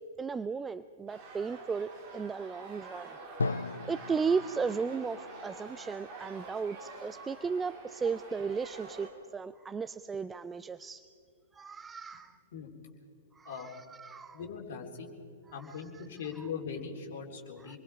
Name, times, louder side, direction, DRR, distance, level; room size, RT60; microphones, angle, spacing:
voice 1, 0.2-3.2 3.8-11.1 11.5-12.4 13.4-14.4 15.6-16.0 16.4-16.5 17.6-17.8, right 5 dB, 10° right, 14 dB, 0.4 m, -35 dB
sound 1, 1.1-9.1, right 3 dB, 35° right, 3.3 m, -47 dB
Drum, 3.4-7.1, left 3 dB, 70° left, 0.4 m, -39 dB
voice 2, 14.3-15.1 15.5-17.8, left 6 dB, 50° left, 0 dB, 3.7 m, -40 dB
28.0 x 21.5 x 4.9 m, 2.4 s
figure-of-eight pair, 105°, 0 cm